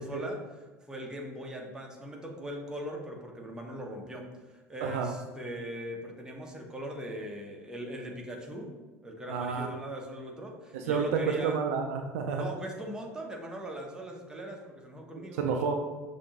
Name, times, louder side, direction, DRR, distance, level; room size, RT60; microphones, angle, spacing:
voice 1, 0.0-8.7 9.0-11.6 12.3-15.4, equal, 10° right, 0 dB, 0.9 m, -40 dB
voice 2, 9.3-9.7 10.7-12.5 15.4-15.7, right 5 dB, 60° right, 4 dB, 0.4 m, -30 dB
6.5 x 2.7 x 2.9 m, 1.2 s
figure-of-eight pair, 70°, 8 cm